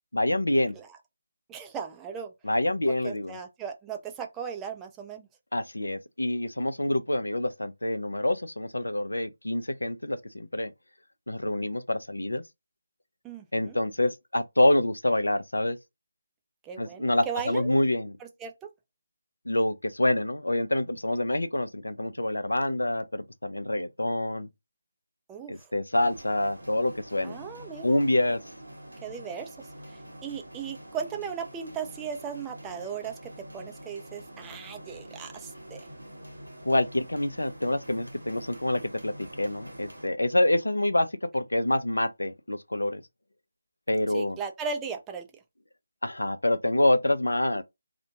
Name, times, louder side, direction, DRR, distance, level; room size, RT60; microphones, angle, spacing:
voice 1, 0.1-0.7 2.4-3.4 5.5-10.7 11.3-12.4 13.5-15.8 16.8-18.1 19.5-24.5 25.5-27.4 27.8-28.4 36.6-43.0 43.9-44.4 46.0-47.6, left 1 dB, 80° left, 0.4 m, -26 dB
voice 2, 1.5-2.3 3.0-5.3 13.2-13.8 16.6-17.7 18.4-18.7 25.3-25.7 27.2-28.0 29.0-29.5 29.9-35.8 44.1-45.3, right 6 dB, 10° right, 0.4 m, -37 dB
sound 1, 25.9-40.1, right 1 dB, 85° right, 0.9 m, -46 dB
2.4 x 2.1 x 2.8 m
figure-of-eight pair, 155°, 0 cm